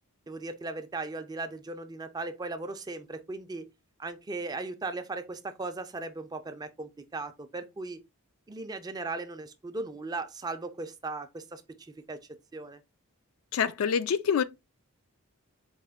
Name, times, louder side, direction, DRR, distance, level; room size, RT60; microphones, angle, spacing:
voice 1, 0.3-3.7 4.0-8.0 8.5-11.6 12.1-12.2 12.5-12.8, right 3 dB, 15° right, 0.3 m, -37 dB
voice 2, 13.5-14.4, left 7 dB, 70° left, 0.3 m, -26 dB
4.2 x 2.1 x 3.5 m
head